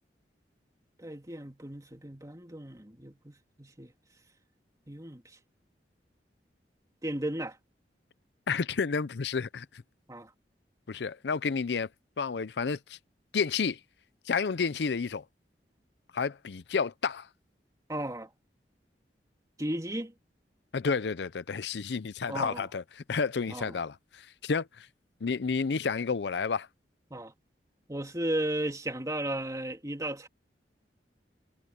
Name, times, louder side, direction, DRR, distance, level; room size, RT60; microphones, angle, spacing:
voice 1, 1.0-3.9 4.9-5.2 7.0-7.6 10.1-10.3 17.9-18.3 19.6-20.1 22.3-22.7 23.5-23.7 27.1-27.3 27.9-30.3, right 1 dB, 20° right, 3.1 m, -35 dB
voice 2, 8.5-9.8 10.9-11.9 12.2-13.0 13.3-13.8 14.3-15.2 16.1-17.3 20.7-24.9 25.2-26.7, left 5 dB, 75° left, 0.5 m, -30 dB
head